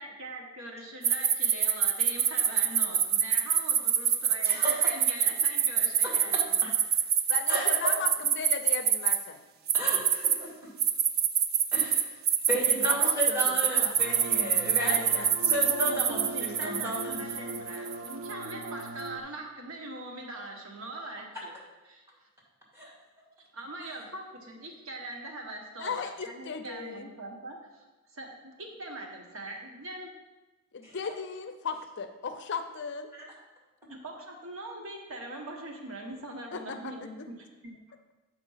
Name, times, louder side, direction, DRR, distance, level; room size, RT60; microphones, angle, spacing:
voice 1, 0.0-6.6 15.4-21.6 21.9-22.3 23.5-27.8 28.1-30.1 33.9-37.4 37.6-37.8, right 1 dB, 70° right, 1 dB, 1.2 m, -42 dB
sound 1, 1.0-9.2 9.7-10.4 10.8-18.6, right 8 dB, 45° right, 0.5 m, -25 dB
voice 2, 4.4-4.9 7.5-8.0 9.7-10.5 11.7-12.1 12.5-15.2 15.5-17.2 22.7-22.9 33.2-33.3, equal, 15° right, -4 dB, 2.1 m, -33 dB
voice 3, 7.3-9.4 12.8-13.4 13.7-13.9 14.8-15.3 25.8-27.1 30.7-33.1 36.5-37.2, left 5 dB, 55° left, 8 dB, 0.5 m, -36 dB
sound 2, 14.0-19.2, right 2 dB, 85° right, 0.7 m, -40 dB
7.9 x 4.4 x 5.6 m, 1.1 s
head